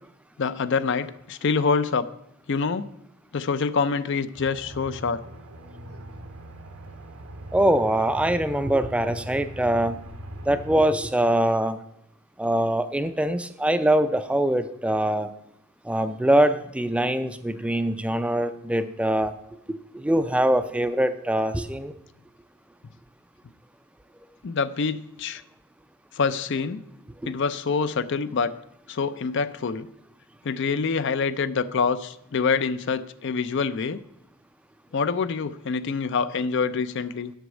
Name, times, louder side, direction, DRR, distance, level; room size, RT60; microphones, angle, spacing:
voice 1, 0.4-2.1 2.5-2.9 3.3-5.2 24.4-25.4 26.2-26.8 27.2-28.5 28.9-29.9 30.5-34.0 34.9-37.3, left 5 dB, 55° left, 14 dB, 0.5 m, -26 dB
Aircraft, 4.3-10.9, equal, 90° right, 1.1 m, -40 dB
voice 2, 7.5-10.0 10.5-11.8 12.4-15.3 15.9-19.3 19.9-21.9, right 1 dB, 5° right, 11 dB, 0.4 m, -23 dB
8.0 x 6.2 x 8.1 m, 0.77 s
head